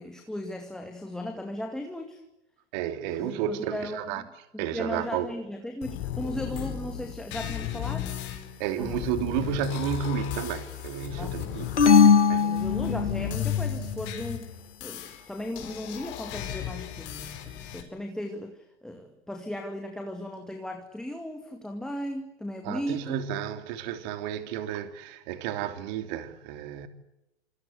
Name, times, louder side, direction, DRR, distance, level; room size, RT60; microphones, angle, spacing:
voice 1, 0.0-2.2 3.2-4.3 4.5-8.1 8.8-9.0 11.2-11.5 12.3-14.5 14.8-23.2, left 1 dB, ahead, 2.2 m, -36 dB
voice 2, 2.7-4.2 4.6-5.3 8.6-12.0 12.3-12.6 22.6-26.9, right 9 dB, 40° right, 3.2 m, -32 dB
sound 1, 5.8-17.8, left 11 dB, 35° left, 5.1 m, -35 dB
sound 2, 11.8-13.4, left 6 dB, 90° left, 2.0 m, -19 dB
27.5 x 26.5 x 8.1 m
hypercardioid pair, 120°, 34 cm